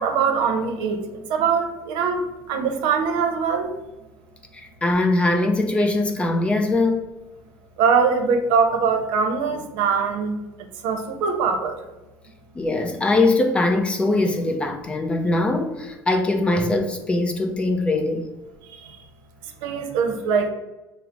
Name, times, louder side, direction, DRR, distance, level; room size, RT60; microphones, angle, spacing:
voice 1, 0.0-3.7 7.8-10.4 10.8-11.8 18.6-19.0 19.6-20.5, right 5 dB, 85° right, 0.6 m, -22 dB
voice 2, 4.5-7.0 12.5-18.3, left 2 dB, 15° left, 0.4 m, -21 dB
5.8 x 2.0 x 3.6 m
cardioid pair, 150°, 8 cm